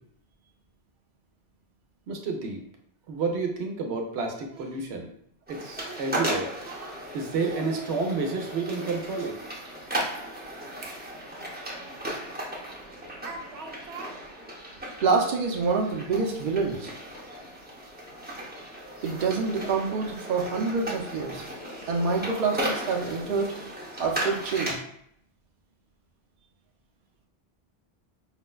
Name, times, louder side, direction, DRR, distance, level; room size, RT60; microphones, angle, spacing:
voice 1, 2.1-2.6 3.1-5.1 5.5-9.4 10.0-10.1 10.8-11.0 13.2-14.2 16.1-16.3, right 4 dB, 90° right, 2 dB, 0.9 m, -31 dB
sound 1, 5.5-24.7, right 1 dB, 10° right, 0.6 m, -36 dB
voice 2, 15.0-16.9 19.0-21.4 21.9-23.5 24.0-24.8, right 4 dB, 55° right, 1 dB, 0.7 m, -26 dB
4.9 x 2.1 x 2.2 m, 0.69 s
omnidirectional pair, 1.1 m